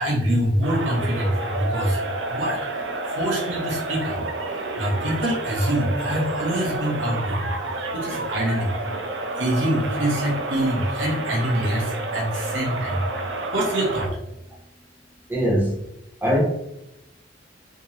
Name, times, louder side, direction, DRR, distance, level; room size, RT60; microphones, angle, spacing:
voice 1, 0.0-2.0 2.3-2.7 3.1-4.2 4.5-7.5 7.9-8.7 9.4-13.1 13.5-14.2, right 1 dB, 90° right, -2 dB, 1.4 m, -25 dB
sound 1, 0.6-14.1, right 2 dB, 70° right, 0.7 m, -30 dB
voice 2, 15.3-15.9 16.2-16.4, equal, 10° right, -5 dB, 1.3 m, -21 dB
3.5 x 3.0 x 4.3 m, 0.86 s
head